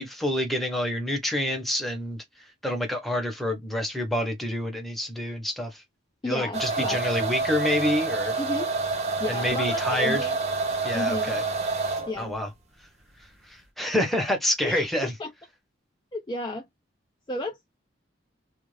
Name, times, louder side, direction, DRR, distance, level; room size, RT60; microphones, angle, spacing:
voice 1, 0.0-2.2 2.6-5.8 6.2-8.3 9.3-10.2 10.8-11.4 12.2-12.5 13.5-15.1, left 1 dB, ahead, 0.9 m, -27 dB
voice 2, 6.2-7.2 8.4-8.7 9.2-10.4 10.9-11.3 12.1-12.3 14.6-15.3 16.1-16.7 17.3-17.8, left 2 dB, 25° left, 0.4 m, -33 dB
sound 1, 6.5-12.2, right 3 dB, 35° right, 0.7 m, -28 dB
2.5 x 2.3 x 3.2 m
head